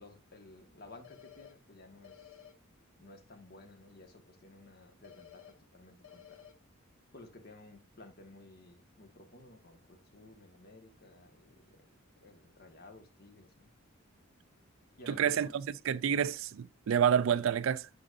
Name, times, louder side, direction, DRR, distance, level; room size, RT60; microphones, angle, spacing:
voice 1, 0.0-2.4 3.0-6.4 7.1-11.8 12.2-13.7 15.0-15.5, left 2 dB, 50° left, 1.4 m, -55 dB
sound 1, 1.0-1.5 2.0-2.5 5.0-5.5 6.0-6.5, left 10 dB, 85° left, 1.2 m, -53 dB
voice 2, 15.1-17.9, right 8 dB, 65° right, 0.4 m, -29 dB
11.0 x 4.9 x 2.5 m
head